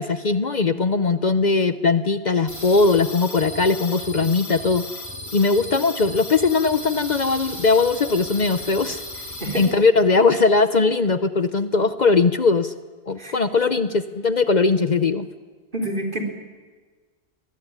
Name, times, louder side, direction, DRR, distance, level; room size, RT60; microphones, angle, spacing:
voice 1, 0.0-4.8 5.3-9.0 9.6-12.7 13.1-15.3, left 4 dB, 45° left, 12 dB, 0.9 m, -20 dB
sound 1, 2.5-9.7, left 1 dB, 15° left, 5.8 m, -35 dB
voice 2, 15.7-16.2, right 1 dB, 50° right, 2 dB, 4.1 m, -27 dB
22.5 x 21.5 x 9.8 m, 1.4 s
omnidirectional pair, 1.1 m